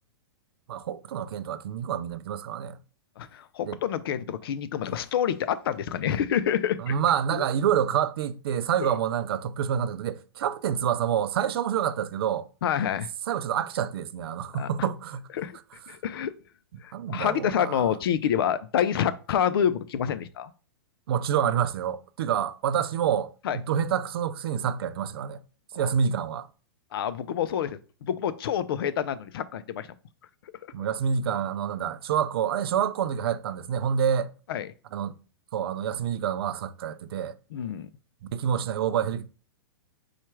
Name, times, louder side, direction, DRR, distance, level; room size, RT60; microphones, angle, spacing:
voice 1, 0.7-2.8 3.6-3.8 6.8-12.5 13.3-15.3 16.9-17.9 21.1-25.4 25.8-26.5 30.7-34.3 34.9-35.1 35.5-37.3 38.3-39.3, right 8 dB, 65° right, 0.5 m, -27 dB
voice 2, 3.2-6.9 7.3-7.4 8.8-8.9 12.6-13.1 14.6-14.7 15.4-15.6 15.9-16.3 16.8-20.5 23.4-23.6 26.9-29.9 34.5-34.7 37.5-37.9, left 9 dB, 65° left, 0.5 m, -27 dB
4.4 x 2.4 x 4.5 m
hypercardioid pair, 135°, 13 cm